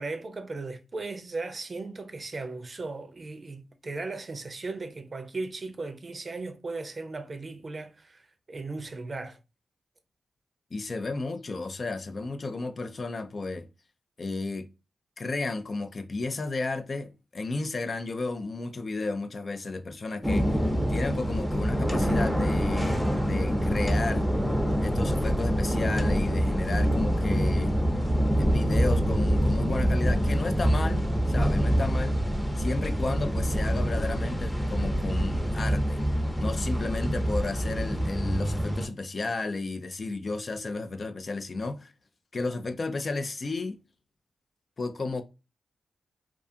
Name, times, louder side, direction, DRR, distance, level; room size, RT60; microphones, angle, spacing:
voice 1, 0.0-8.2 8.5-9.4, right 3 dB, 45° right, 0.5 m, -37 dB
voice 2, 10.7-13.7 14.2-14.7 15.2-20.6 20.9-24.3 24.8-27.7 28.4-32.2 32.6-36.0 36.4-41.9 42.3-43.8 44.8-45.2, left 3 dB, 50° left, 0.4 m, -33 dB
sound 1, 20.2-38.9, equal, 5° left, 0.7 m, -26 dB
2.4 x 2.4 x 2.5 m
supercardioid pair, 45°, 0 cm